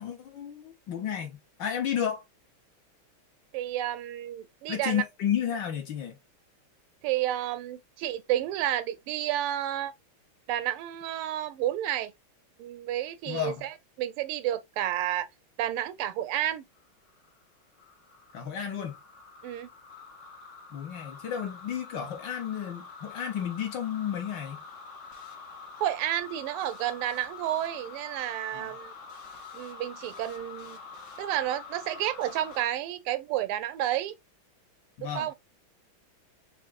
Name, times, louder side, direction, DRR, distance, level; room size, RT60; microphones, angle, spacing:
voice 1, 0.0-2.2 4.7-6.2 13.3-13.6 18.3-19.0 20.7-24.7 28.5-28.7 35.0-35.3, left 9 dB, 65° left, 1.4 m, -32 dB
voice 2, 3.5-5.0 7.0-9.9 10.5-12.1 12.6-13.7 14.0-15.3 15.6-16.6 19.4-19.7 25.8-28.9 29.5-30.8 31.2-34.2 35.0-35.3, right 12 dB, 90° right, 1.5 m, -31 dB
sound 1, 16.7-32.6, left 4 dB, 85° left, 0.6 m, -46 dB
5.9 x 2.1 x 2.4 m
omnidirectional pair, 2.4 m